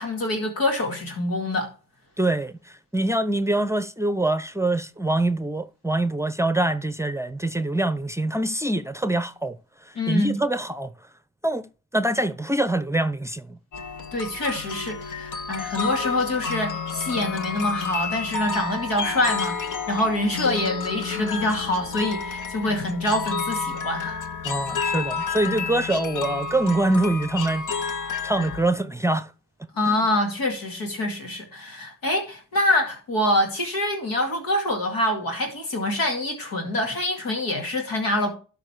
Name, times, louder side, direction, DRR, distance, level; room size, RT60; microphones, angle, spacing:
voice 1, 0.0-1.7 10.0-10.4 14.1-24.2 29.7-38.4, left 1 dB, 85° left, 2.4 m, -25 dB
voice 2, 2.2-2.5 2.9-9.6 10.1-10.9 11.4-11.7 11.9-13.6 24.4-27.7 28.2-29.3 29.6-29.7, right 2 dB, 10° right, 0.6 m, -24 dB
sound 1, 13.7-28.6, left 5 dB, 60° left, 1.2 m, -30 dB
12.0 x 4.9 x 4.6 m
supercardioid pair, 45°, 34 cm